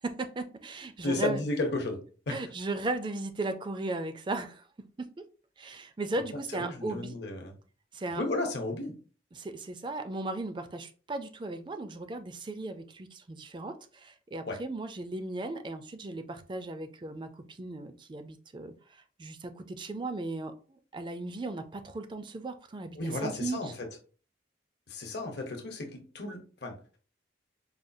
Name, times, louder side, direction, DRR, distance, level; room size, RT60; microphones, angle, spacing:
voice 1, 0.0-1.4 2.3-4.7 5.0-5.1 5.6-7.2 7.9-8.2 9.3-23.7, right 2 dB, 25° right, 0.4 m, -36 dB
voice 2, 1.0-2.4 6.5-7.5 8.2-8.9 14.5-14.6 22.9-23.7 24.9-26.7, left 2 dB, 60° left, 0.9 m, -33 dB
4.9 x 2.3 x 2.6 m
head